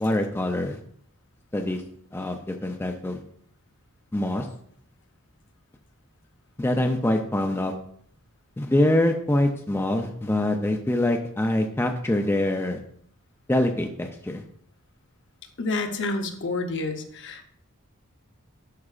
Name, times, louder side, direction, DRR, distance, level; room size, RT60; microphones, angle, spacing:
voice 1, 0.0-0.8 1.5-1.8 2.1-3.2 4.1-4.5 6.6-7.7 8.6-12.8 13.5-14.4, left 1 dB, 10° left, 4 dB, 0.4 m, -24 dB
voice 2, 15.6-17.4, left 3 dB, 60° left, 5 dB, 0.8 m, -29 dB
11.0 x 4.7 x 2.4 m, 0.65 s
head